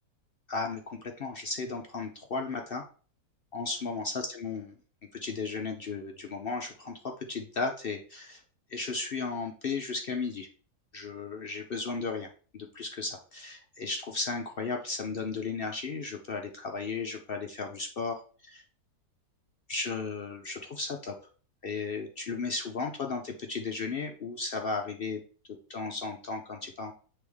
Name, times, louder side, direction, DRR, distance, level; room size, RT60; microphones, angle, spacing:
voice 1, 0.5-2.8 3.5-4.8 5.1-8.4 8.7-10.5 10.9-18.6 19.7-21.1 21.6-25.2 25.7-26.9, left 4 dB, 60° left, 3 dB, 0.5 m, -35 dB
8.0 x 3.4 x 3.5 m, 0.40 s
omnidirectional pair, 1.8 m